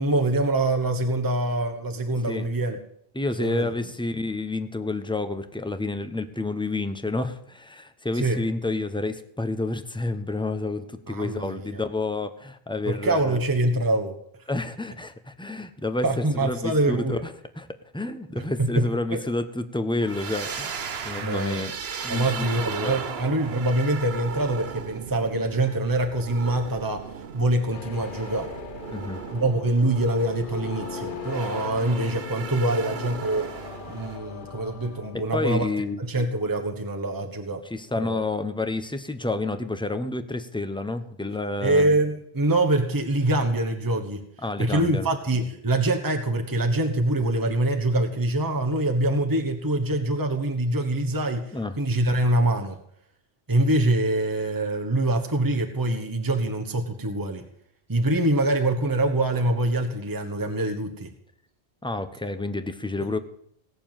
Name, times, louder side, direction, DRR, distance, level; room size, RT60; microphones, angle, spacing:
voice 1, 0.0-2.8 3.4-3.7 8.1-8.4 11.1-11.8 12.8-14.1 16.0-17.3 18.4-19.2 21.2-21.8 22.1-28.5 29.3-33.5 33.9-35.7 36.0-37.6 38.0-38.2 41.6-44.2 44.6-52.8 53.5-57.5 57.9-61.1, right 1 dB, 20° right, 4 dB, 1.3 m, -25 dB
voice 2, 3.1-13.4 14.5-17.7 17.9-21.7 22.0-22.4 22.8-23.0 28.9-29.2 35.1-36.0 37.7-41.9 44.4-45.1 51.5-51.7 61.8-63.2, left 2 dB, 5° left, 9 dB, 0.9 m, -29 dB
sound 1, 20.0-34.2, right 6 dB, 70° right, 1.2 m, -37 dB
sound 2, 27.7-35.6, left 8 dB, 55° left, 0.9 m, -39 dB
17.5 x 7.0 x 9.1 m, 0.69 s
omnidirectional pair, 1.1 m